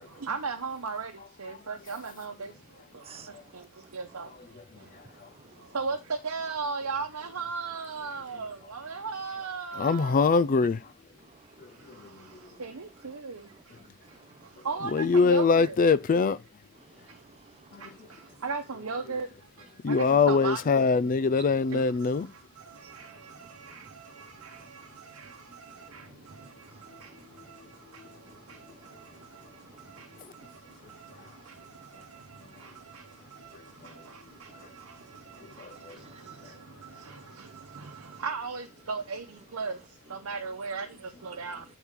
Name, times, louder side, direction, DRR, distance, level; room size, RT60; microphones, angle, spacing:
voice 1, 0.2-1.1 1.4-2.5 3.5-3.6 3.9-4.3 5.7-6.0 6.2-10.4 12.6-13.5 14.6-15.8 18.4-19.3 19.9-20.6 21.7-21.8 22.7-23.1 23.4-24.1 24.4-24.6 25.1-25.3 25.6-26.0 26.4-26.5 34.9-35.0 37.7-37.9 38.2-39.2 39.5-39.8 40.1-40.9 41.2-41.6, right 4 dB, 80° right, 0.9 m, -35 dB
voice 2, 2.9-4.0 4.7-5.8 11.2-12.6 13.5-14.7 16.8-18.4 22.8-24.7 25.7-26.3 26.6-27.5 27.8-30.5 30.8-31.3 31.5-31.6 31.9-32.0 33.8-34.0 34.5-36.4 37.5-38.1 41.3-41.4, right 4 dB, 30° right, 0.6 m, -57 dB
voice 3, 9.8-10.8 14.9-16.4 19.8-22.3 35.9-36.0, left 4 dB, 40° left, 0.4 m, -22 dB
8.2 x 4.5 x 3.6 m
head